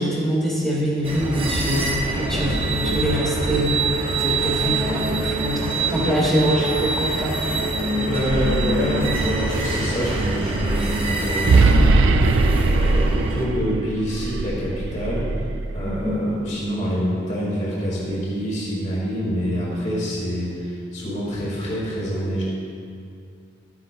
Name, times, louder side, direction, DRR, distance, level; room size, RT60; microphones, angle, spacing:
voice 1, 0.0-3.8 4.2-7.4 15.8-16.2, equal, 5° left, -11 dB, 1.6 m, -24 dB
sound 1, 1.0-13.5, right 2 dB, 30° right, 0.9 m, -25 dB
voice 2, 7.9-15.3 15.7-22.4, equal, 40° left, -6 dB, 2.0 m, -26 dB
sound 2, 8.0-16.2, right 3 dB, 75° right, 0.4 m, -22 dB
12.0 x 9.6 x 2.2 m, 2.4 s
head